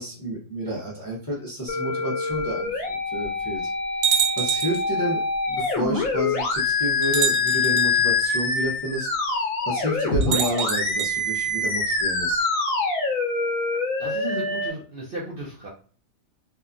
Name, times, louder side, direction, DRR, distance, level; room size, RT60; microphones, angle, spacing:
voice 1, 0.0-3.7 4.0-5.2 5.5-9.1 9.6-12.5, right 1 dB, 25° left, -6 dB, 0.5 m, -30 dB
sound 1, 1.7-14.7, left 3 dB, 80° left, 1.0 m, -25 dB
sound 2, 2.4-2.5 3.2-3.3 4.0-4.9 6.0-6.1 7.0-7.9 10.2-11.1, right 8 dB, 90° right, 1.0 m, -25 dB
voice 2, 14.0-15.7, right 2 dB, 55° right, -4 dB, 0.6 m, -34 dB
2.7 x 2.3 x 2.4 m, 0.40 s
omnidirectional pair, 1.4 m